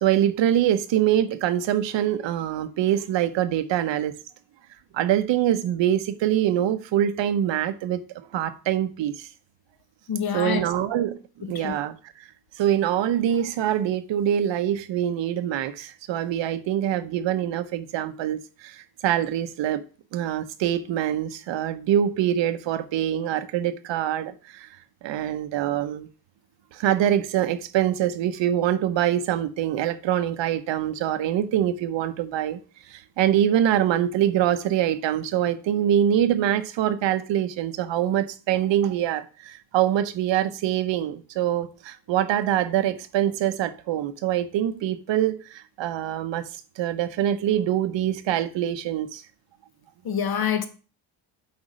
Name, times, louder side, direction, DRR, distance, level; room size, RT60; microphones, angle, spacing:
voice 1, 0.0-4.1 4.9-8.0 8.3-9.3 10.3-11.2 11.5-11.9 12.6-19.8 20.1-24.7 25.0-26.1 26.7-32.6 32.9-46.5 46.8-49.2, right 11 dB, 85° right, 0.9 m, -24 dB
voice 2, 10.1-10.6 11.5-11.8 50.0-50.7, left 8 dB, 55° left, 1.2 m, -26 dB
8.3 x 4.3 x 5.0 m
cardioid pair, 120°, 43 cm